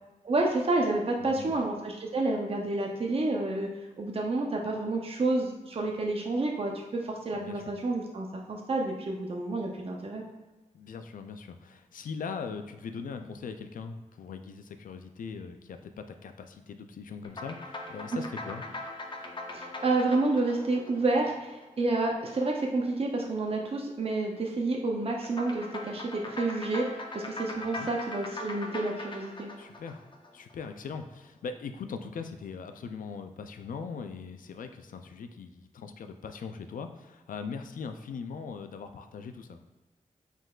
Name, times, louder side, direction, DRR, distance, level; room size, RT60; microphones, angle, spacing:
voice 1, 0.2-3.7 4.0-10.2 19.5-29.5, right 2 dB, 45° right, 0 dB, 0.6 m, -29 dB
voice 2, 1.2-1.6 7.3-7.7 10.7-18.6 27.6-27.9 29.6-30.0 30.3-39.6, left 5 dB, 90° left, 7 dB, 0.4 m, -40 dB
sound 1, 17.2-21.9 25.2-30.7, left 2 dB, 35° left, 0.6 m, -41 dB
5.1 x 3.8 x 2.4 m, 1.2 s
wide cardioid pair, 75°, 14 cm